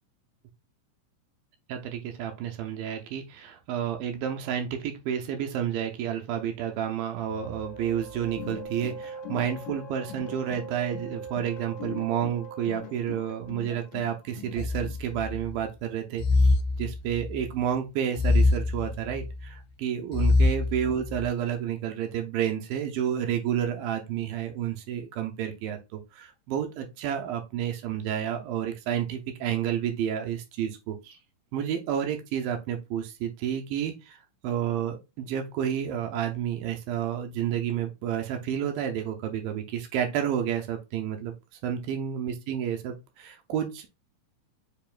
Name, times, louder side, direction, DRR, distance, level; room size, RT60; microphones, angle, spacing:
voice 1, 1.7-31.2 31.5-41.3 41.6-43.9, right 9 dB, 80° right, 4 dB, 2.5 m, -30 dB
sound 1, 7.2-14.5, right 4 dB, 35° left, 1.4 m, -42 dB
sound 2, 8.1-15.0, left 11 dB, 75° left, 2.0 m, -42 dB
sound 3, 14.6-15.5 16.2-17.5 18.2-19.5 20.1-21.3, left 3 dB, 90° left, 2.4 m, -24 dB
6.9 x 3.0 x 2.5 m, 0.24 s
omnidirectional pair, 4.1 m